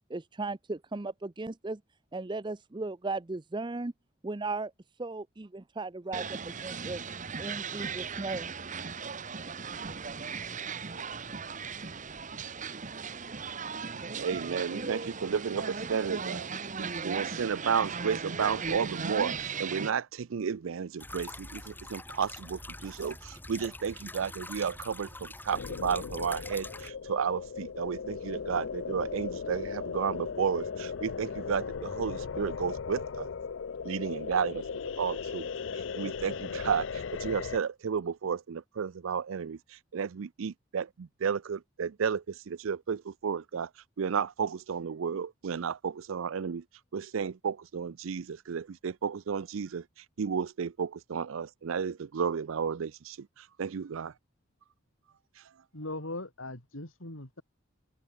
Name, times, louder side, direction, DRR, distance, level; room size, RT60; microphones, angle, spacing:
voice 1, 0.1-1.8 2.1-3.9 4.2-4.7 5.0-7.0 7.4-8.5, right 3 dB, 25° right, 0.6 m, -36 dB
sound 1, 6.1-19.9, right 5 dB, 40° right, 1.3 m, -37 dB
voice 2, 14.2-16.5 16.8-33.3 33.8-34.6 35.0-35.5 35.7-43.7 44.0-46.6 46.9-49.8 50.2-54.1, right 6 dB, 85° right, 0.5 m, -32 dB
sound 2, 21.0-26.9, left 2 dB, 10° left, 4.2 m, -45 dB
sound 3, 25.5-37.6, left 6 dB, 65° left, 0.5 m, -37 dB
voice 3, 55.7-57.4, left 2 dB, 85° left, 4.7 m, -39 dB
head